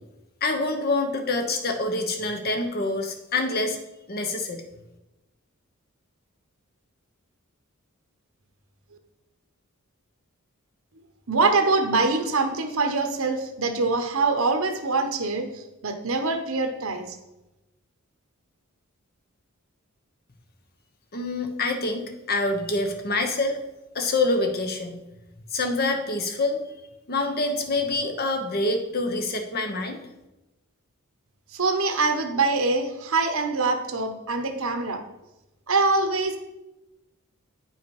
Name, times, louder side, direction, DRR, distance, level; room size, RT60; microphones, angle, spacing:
voice 1, 0.4-3.8 4.1-4.6 21.1-23.6 23.9-25.0 25.5-26.6 27.1-30.0, left 2 dB, 45° left, 6 dB, 1.0 m, -26 dB
voice 2, 11.3-17.2 31.5-35.0 35.7-36.4, right 3 dB, 75° right, 7 dB, 1.0 m, -24 dB
9.2 x 5.7 x 4.8 m, 0.98 s
head